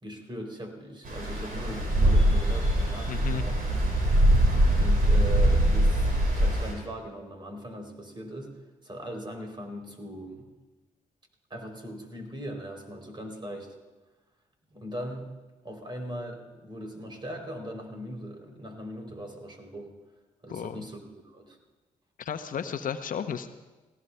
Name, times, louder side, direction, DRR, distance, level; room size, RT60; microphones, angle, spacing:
voice 1, 0.0-3.8 4.7-8.6 8.8-10.5 11.5-13.7 14.7-15.4 15.6-19.9 20.4-21.6, equal, 30° right, 3 dB, 3.2 m, -40 dB
Stream, 1.0-6.7, right 1 dB, 70° right, 4.5 m, -23 dB
voice 2, 3.1-3.4 20.5-20.8 22.2-23.5, left 7 dB, 60° left, 9 dB, 0.7 m, -33 dB
18.0 x 16.0 x 2.2 m, 1.2 s
supercardioid pair, 50°, 16 cm